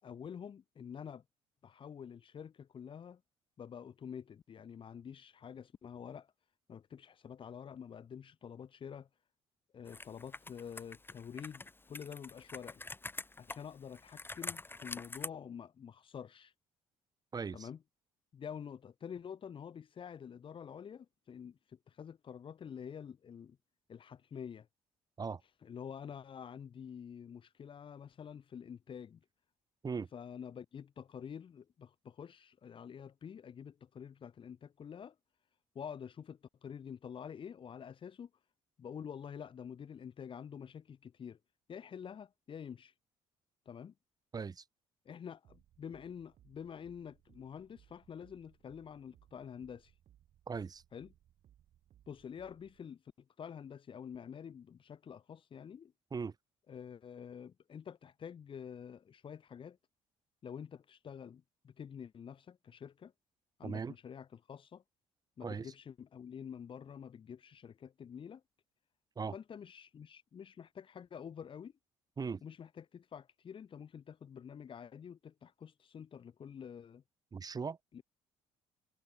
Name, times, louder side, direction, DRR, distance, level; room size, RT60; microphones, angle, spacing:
voice 1, 0.0-1.2 1.6-3.2 3.6-6.3 6.7-9.1 9.7-12.8 13.4-16.5 17.5-17.8 18.3-23.6 23.9-24.7 25.6-29.2 30.1-35.2 35.8-38.3 38.8-41.4 41.7-42.9 43.7-43.9 45.1-49.9 50.9-51.1 52.1-53.0 53.4-55.9 56.7-59.8 60.4-63.1 63.6-64.8 65.4-68.4 69.3-71.7 72.4-77.0 77.9-78.0, left 7 dB, 50° left, 3.5 m, -48 dB
Computer keyboard, 9.9-15.3, left 2 dB, 20° left, 6.3 m, -46 dB
voice 2, 17.3-17.7 25.2-25.4 29.8-30.1 44.3-44.6 50.5-50.8 56.1-56.3 63.6-63.9 65.4-65.7 69.2-69.3 72.2-72.4 77.3-77.8, right 5 dB, 35° right, 2.2 m, -38 dB
sound 1, 45.4-52.8, right 11 dB, 65° right, 7.8 m, -66 dB
supercardioid pair, 75°, 11 cm